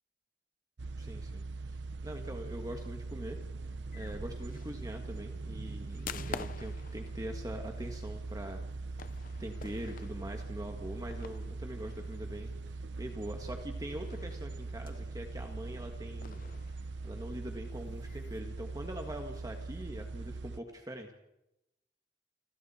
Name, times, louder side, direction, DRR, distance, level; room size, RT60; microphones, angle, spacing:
sound 1, 0.8-20.6, right 3 dB, 85° right, 0.7 m, -41 dB
voice 1, 1.0-3.4 3.9-8.6 9.0-9.1 9.4-16.8 17.0-21.1, right 1 dB, 20° right, 3 dB, 1.6 m, -43 dB
sound 2, 2.3-16.6, right 2 dB, 35° right, 0.8 m, -54 dB
sound 3, 2.6-13.0 13.3-13.4 13.9-15.5 16.2-18.4, left 5 dB, 50° left, 0.7 m, -50 dB
28.5 x 26.0 x 4.4 m, 0.91 s
head